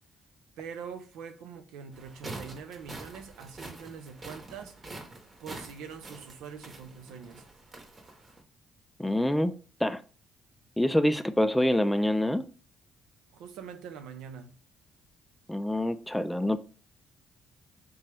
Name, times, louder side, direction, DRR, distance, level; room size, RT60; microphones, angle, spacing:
voice 1, 0.6-4.7 5.4-7.4 13.3-14.6, right 6 dB, 85° right, 0.5 m, -43 dB
sound 1, 1.9-8.4, right 2 dB, 35° right, 1.0 m, -46 dB
voice 2, 9.0-9.5 9.8-10.0 10.8-12.5 15.5-16.6, left 1 dB, 5° left, 0.3 m, -26 dB
3.4 x 2.9 x 3.3 m
cardioid pair, 85°, 0 cm